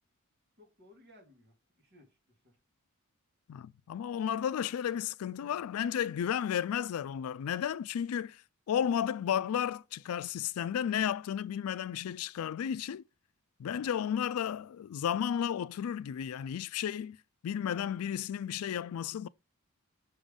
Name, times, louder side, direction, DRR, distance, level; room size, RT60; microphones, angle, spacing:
voice 1, 0.6-2.6, left 1 dB, 55° right, 2.3 m, -60 dB
voice 2, 3.5-8.4 8.7-13.0 13.6-17.2 17.4-19.3, left 9 dB, 90° left, 0.3 m, -33 dB
6.1 x 3.7 x 5.2 m
head